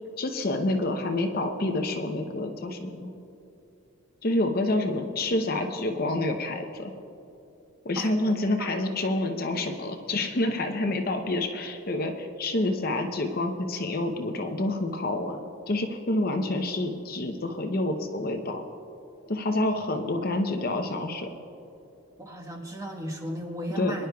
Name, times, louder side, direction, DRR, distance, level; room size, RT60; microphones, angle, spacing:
voice 1, 0.2-3.1 4.2-6.9 7.8-18.6 19.3-21.3 23.8-23.9, left 2 dB, 45° left, 4 dB, 0.7 m, -28 dB
voice 2, 7.9-8.4 10.6-10.9 22.2-24.1, equal, 15° right, -1 dB, 1.3 m, -36 dB
23.0 x 10.5 x 2.3 m, 2.8 s
head